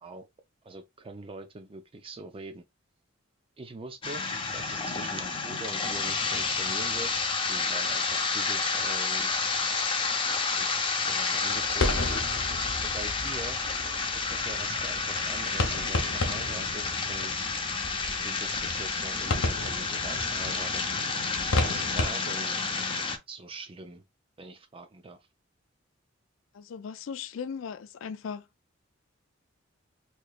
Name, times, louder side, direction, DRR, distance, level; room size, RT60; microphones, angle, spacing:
voice 1, 0.6-2.6 3.6-4.2 4.5-9.3 10.5-12.2 12.8-13.6 14.1-17.5 18.2-20.8 21.6-22.6 23.3-24.0 24.4-25.2, right 3 dB, 25° right, 0.4 m, -43 dB
sound 1, 4.0-23.2, left 4 dB, 25° left, 0.7 m, -30 dB
sound 2, 11.5-22.1, left 2 dB, 90° left, 0.9 m, -33 dB
voice 2, 26.5-28.5, left 6 dB, 70° left, 0.4 m, -38 dB
4.2 x 3.0 x 2.4 m
head